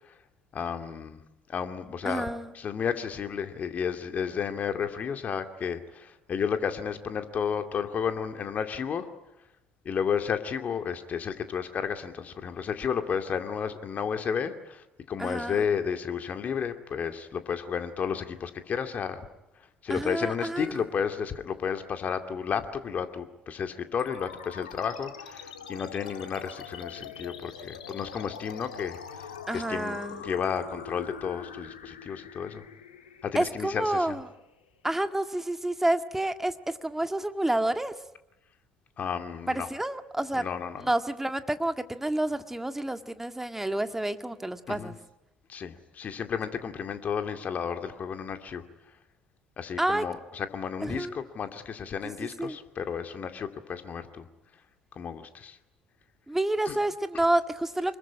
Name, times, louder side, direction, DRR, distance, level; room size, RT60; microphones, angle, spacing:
voice 1, 0.5-1.2 1.5-2.3 2.5-9.1 9.8-19.3 19.8-32.6 33.2-34.2 39.0-39.7 40.3-40.8 44.7-44.9 45.5-48.7 49.6-54.3 55.0-55.6 56.7-56.8, left 7 dB, 40° left, 7 dB, 2.4 m, -32 dB
voice 2, 2.1-2.5 15.2-15.7 19.9-20.7 29.5-30.2 33.3-34.3 34.8-37.9 39.5-40.5 40.8-45.0 49.8-50.0 50.8-51.2 52.2-52.6 56.3-58.0, right 1 dB, 10° right, 8 dB, 1.8 m, -29 dB
sound 1, 24.0-34.9, left 7 dB, 85° left, 1.9 m, -44 dB
25.5 x 21.5 x 9.9 m, 0.90 s
hypercardioid pair, 55°, 4 cm